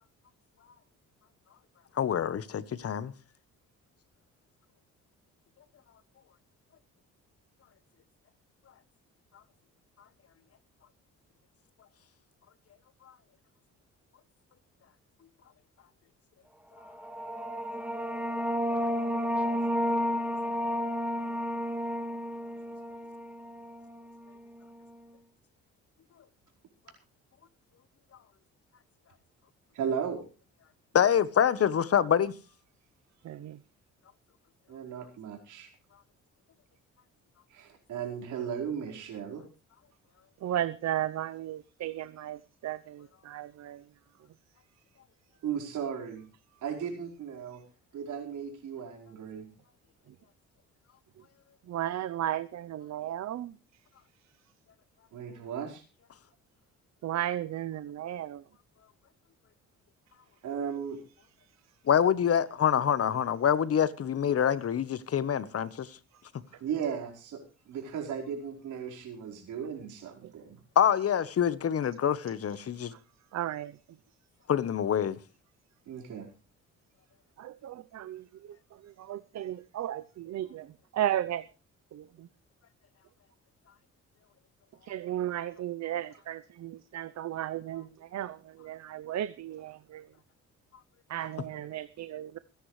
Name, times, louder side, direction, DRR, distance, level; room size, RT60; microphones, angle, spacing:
voice 1, 2.0-3.1 30.9-32.3 61.9-65.9 70.8-72.9 74.5-75.2, left 8 dB, 50° left, 1.2 m, -26 dB
sound 1, 16.9-24.1, equal, 5° right, 1.9 m, -31 dB
voice 2, 29.7-30.2 34.7-35.7 37.5-39.4 45.4-46.2 46.6-47.6 47.9-49.4 55.1-55.8 60.4-61.0 66.6-67.4 67.7-70.6 75.9-76.3, right 7 dB, 80° right, 4.8 m, -36 dB
voice 3, 33.3-33.6 40.4-42.4 42.6-43.8 51.7-53.5 57.0-58.4 73.3-73.7 77.4-78.2 79.1-80.6 80.9-81.4 81.9-82.0 84.9-87.8 88.1-88.4 88.6-90.0 91.1-92.4, right 12 dB, 60° right, 0.8 m, -34 dB
28.0 x 10.5 x 3.3 m
cardioid pair, 90°, 30 cm